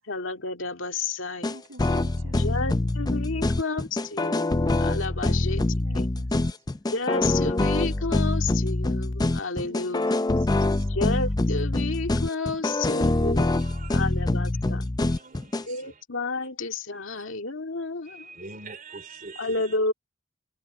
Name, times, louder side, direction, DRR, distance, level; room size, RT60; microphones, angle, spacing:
voice 1, 0.0-1.6 2.4-4.5 4.8-5.6 5.9-6.1 6.9-10.1 10.9-14.8 15.7-18.3 19.4-19.9, left 3 dB, 75° left, 2.1 m, -31 dB
sound 1, 1.4-15.6, left 2 dB, 20° left, 0.5 m, -25 dB
voice 2, 1.4-2.9 5.2-6.6 9.6-10.9, right 1 dB, 85° right, 6.8 m, -48 dB
voice 3, 13.4-14.1 15.0-16.0 16.4-16.5 16.9-17.2 18.0-19.8, right 3 dB, 45° right, 3.4 m, -45 dB
head